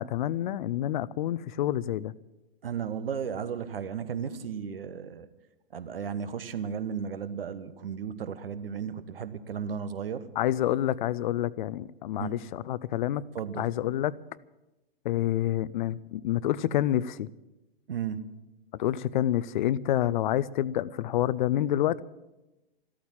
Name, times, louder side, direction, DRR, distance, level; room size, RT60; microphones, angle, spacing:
voice 1, 0.0-2.1 10.4-13.2 13.6-14.1 15.0-17.3 18.8-22.0, left 12 dB, 55° left, 0.6 m, -28 dB
voice 2, 2.6-5.3 5.7-10.3 12.2-12.3 13.3-13.7 17.9-18.2, right 7 dB, 70° right, 1.2 m, -34 dB
14.0 x 13.5 x 7.3 m
figure-of-eight pair, 105°, 30 cm